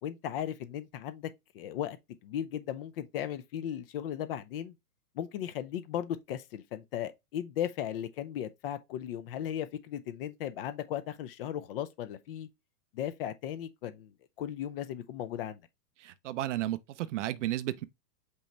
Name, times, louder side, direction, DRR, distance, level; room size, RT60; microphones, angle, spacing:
voice 1, 0.0-1.3 1.5-2.0 2.2-4.7 5.2-12.5 12.9-14.1 14.4-15.6, left 10 dB, 40° left, 0.5 m, -36 dB
voice 2, 16.0-17.8, right 14 dB, 50° right, 0.5 m, -33 dB
5.4 x 3.0 x 3.1 m
hypercardioid pair, 120°, 48 cm